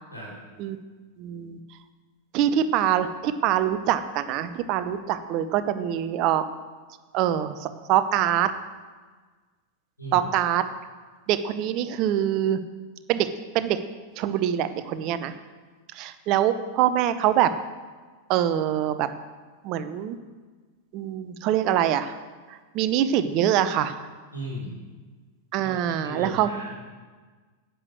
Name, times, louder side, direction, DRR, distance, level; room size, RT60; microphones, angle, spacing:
voice 1, 1.2-1.6 2.3-6.5 7.1-8.5 10.1-10.7 11.3-12.6 13.1-13.3 13.5-13.8 14.2-15.3 15.9-17.5 18.3-19.1 19.6-20.2 20.9-22.2 22.5-23.9 25.5-26.5, right 11 dB, 40° right, 11 dB, 0.8 m, -24 dB
voice 2, 10.0-10.3 24.3-24.8 25.6-26.8, equal, 90° left, -3 dB, 4.4 m, -36 dB
10.0 x 8.0 x 7.9 m, 1.4 s
figure-of-eight pair, 90°, 0 cm